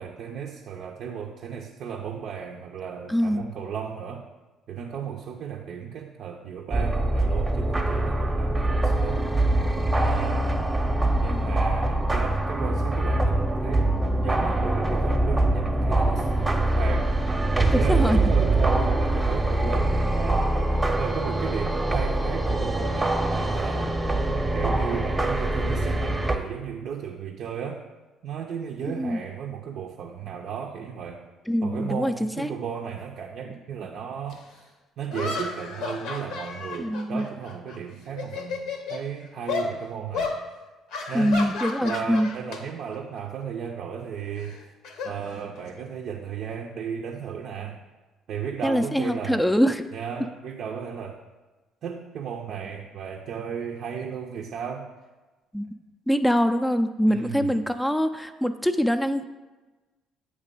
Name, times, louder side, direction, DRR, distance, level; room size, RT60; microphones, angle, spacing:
voice 1, 0.0-4.3 4.7-9.3 10.0-10.8 11.2-20.5 21.0-23.9 24.5-27.8 28.2-31.2 31.6-34.6 35.0-40.4 41.1-44.7 45.0-47.8 48.3-49.4 49.9-51.2 51.8-54.9 57.1-57.6, right 7 dB, 60° right, 1 dB, 0.5 m, -35 dB
voice 2, 3.1-3.4 17.7-18.2 28.9-29.2 31.5-32.5 36.8-37.3 41.1-42.3 48.6-49.8 55.5-55.7 56.1-59.2, equal, 5° left, 7 dB, 0.4 m, -24 dB
sound 1, 6.7-26.4, right 2 dB, 20° right, 0.8 m, -24 dB
sound 2, 34.3-34.4 35.1-37.8 38.1-39.0 39.5-39.7 40.1-40.4 40.9-42.6 42.9-43.2 44.4-45.8, left 4 dB, 70° left, 0.8 m, -32 dB
8.0 x 3.2 x 5.2 m, 1.2 s
hypercardioid pair, 50°, 0 cm